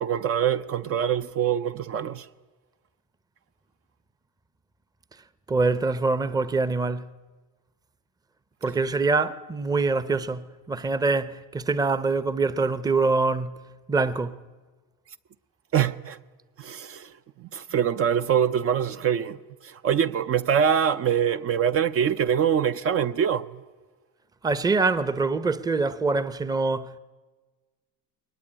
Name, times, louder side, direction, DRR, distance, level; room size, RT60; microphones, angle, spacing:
voice 1, 0.0-2.3 15.7-16.2 16.6-17.1 17.4-19.4 19.6-23.6, right 8 dB, 40° right, 0.7 m, -24 dB
voice 2, 5.5-7.1 8.6-13.6 13.9-14.4 24.4-27.0, right 3 dB, 10° right, 0.8 m, -24 dB
22.5 x 19.5 x 9.8 m
cardioid pair, 140°, 33 cm